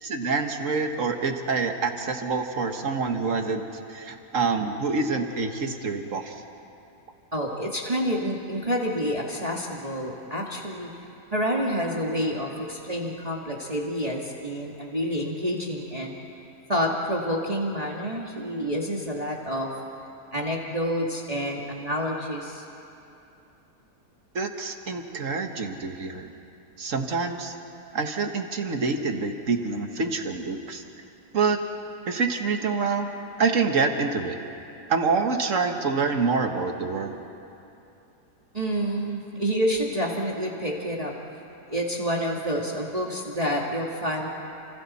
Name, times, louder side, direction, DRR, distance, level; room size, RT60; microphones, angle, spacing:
voice 1, 0.0-3.6 3.9-6.3 24.4-26.3 26.8-27.5 27.9-30.8 31.3-31.6 32.1-33.1 33.4-34.4 34.9-37.2, right 4 dB, 50° right, 5 dB, 1.7 m, -26 dB
voice 2, 7.3-10.9 11.3-16.1 16.7-19.7 20.3-22.6 38.5-41.1 41.7-44.3, equal, 25° right, -2 dB, 1.9 m, -28 dB
30.0 x 27.0 x 4.3 m, 2.8 s
omnidirectional pair, 1.7 m